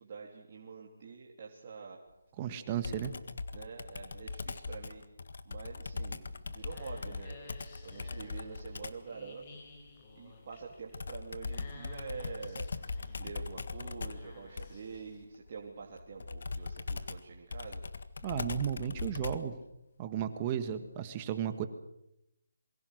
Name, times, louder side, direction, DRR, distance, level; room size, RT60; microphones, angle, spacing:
voice 1, 0.0-2.0 3.5-5.1 5.4-7.4 7.8-9.6 10.1-12.7 13.2-17.8, right 5 dB, 35° right, -2 dB, 3.0 m, -46 dB
voice 2, 2.4-3.1 18.2-19.5 20.0-21.7, right 9 dB, 20° right, 10 dB, 1.5 m, -34 dB
Computer keyboard, 2.8-9.1 10.9-19.6, left 4 dB, 65° left, 1.7 m, -40 dB
sound 1, 6.2-15.3, left 2 dB, 25° left, 4.5 m, -54 dB
27.5 x 23.5 x 6.5 m, 0.82 s
hypercardioid pair, 165°, 0 cm